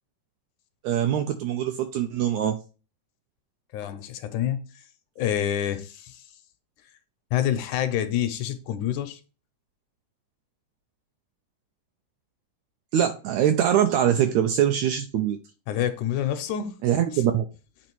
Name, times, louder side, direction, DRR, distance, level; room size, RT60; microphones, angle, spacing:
voice 1, 0.8-2.6 12.9-15.4 16.8-17.4, right 10 dB, 80° right, 1.6 m, -23 dB
voice 2, 3.7-4.6 5.2-6.2 7.3-9.2 15.7-16.7 17.1-17.2, left 10 dB, 80° left, 2.0 m, -27 dB
8.4 x 3.0 x 4.5 m
omnidirectional pair, 3.7 m